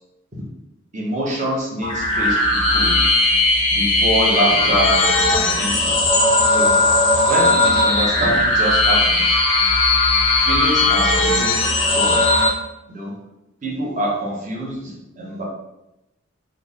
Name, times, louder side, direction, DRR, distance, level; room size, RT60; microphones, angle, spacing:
voice 1, 0.9-3.1 3.7-5.1 5.3-5.9 6.5-6.8 7.3-9.4 10.4-12.2 12.9-13.2 13.6-15.4, right 1 dB, 40° right, -4 dB, 0.9 m, -25 dB
sound 1, 1.8-12.5, left 2 dB, 25° left, 0.6 m, -17 dB
3.4 x 2.1 x 3.8 m, 0.90 s
head